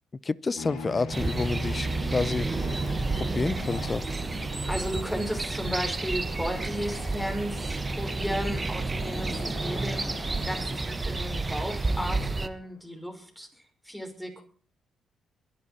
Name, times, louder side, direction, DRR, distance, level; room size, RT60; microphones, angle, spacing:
voice 1, 0.2-2.5 3.1-4.0, left 4 dB, 30° left, 21 dB, 0.7 m, -29 dB
sound 1, 0.6-12.6, left 1 dB, 85° left, 3.1 m, -42 dB
sound 2, 1.1-12.5, right 3 dB, 25° right, 1.3 m, -31 dB
voice 2, 4.4-13.5 13.8-14.4, equal, 5° left, 3 dB, 5.8 m, -34 dB
23.0 x 11.0 x 4.3 m, 0.41 s
cardioid pair, 70°, 0 cm